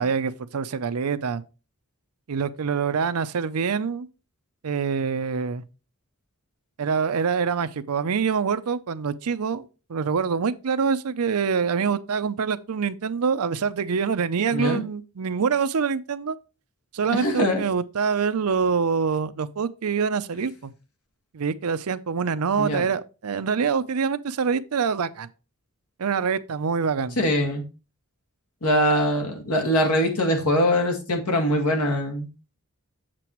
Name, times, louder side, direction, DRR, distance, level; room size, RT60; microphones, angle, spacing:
voice 1, 0.0-1.4 2.3-4.1 4.6-5.6 6.8-16.4 16.9-20.7 21.3-25.3 26.0-27.2, right 5 dB, 85° right, 0.6 m, -25 dB
voice 2, 14.5-14.8 17.1-17.6 22.6-22.9 27.2-27.6 28.6-32.3, equal, 90° left, 1.9 m, -22 dB
7.5 x 6.9 x 3.0 m
head